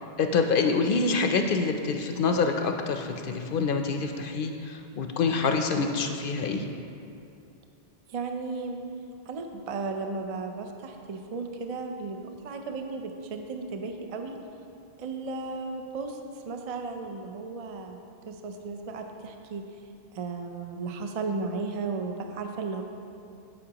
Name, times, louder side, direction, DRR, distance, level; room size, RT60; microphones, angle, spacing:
voice 1, 0.2-6.7, left 4 dB, 65° left, 5 dB, 0.7 m, -26 dB
voice 2, 8.1-8.8 9.3-14.4 15.0-19.7 20.1-22.8, right 4 dB, 45° right, 5 dB, 0.5 m, -35 dB
12.5 x 5.4 x 2.9 m, 2.6 s
omnidirectional pair, 1.0 m